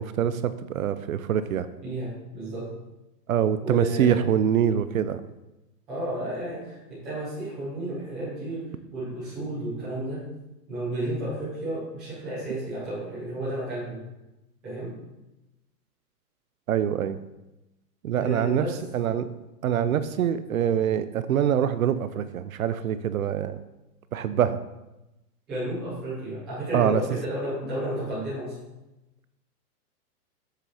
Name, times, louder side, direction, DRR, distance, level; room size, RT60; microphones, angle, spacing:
voice 1, 0.0-1.7 3.3-5.2 16.7-17.2 18.0-18.7 18.9-19.3 19.6-23.6 24.1-24.6 26.7-27.0, right 9 dB, 60° right, 13 dB, 0.6 m, -24 dB
voice 2, 1.8-2.7 3.6-4.3 5.9-10.2 10.7-14.0 14.6-14.9 18.2-18.8 25.5-28.5, right 1 dB, ahead, -14 dB, 0.5 m, -32 dB
7.5 x 6.2 x 4.2 m, 0.97 s
hypercardioid pair, 175°, 48 cm